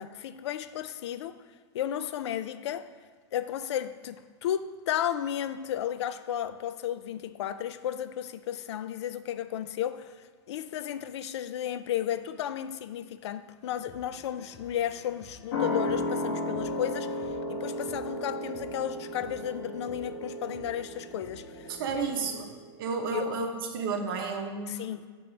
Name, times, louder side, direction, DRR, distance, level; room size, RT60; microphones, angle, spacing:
voice 1, 0.0-1.4 1.7-2.9 3.3-10.1 10.5-22.0 23.1-23.3 24.7-25.0, left 10 dB, 85° left, 0.4 m, -33 dB
sound 1, 13.6-22.4, left 2 dB, 5° left, 0.4 m, -53 dB
sound 2, 15.5-22.6 22.9-23.0, left 1 dB, 55° left, 1.2 m, -34 dB
voice 2, 21.7-22.5 22.8-24.8, right 4 dB, 55° right, 0.8 m, -31 dB
7.1 x 3.0 x 5.2 m
supercardioid pair, 180°, 14 cm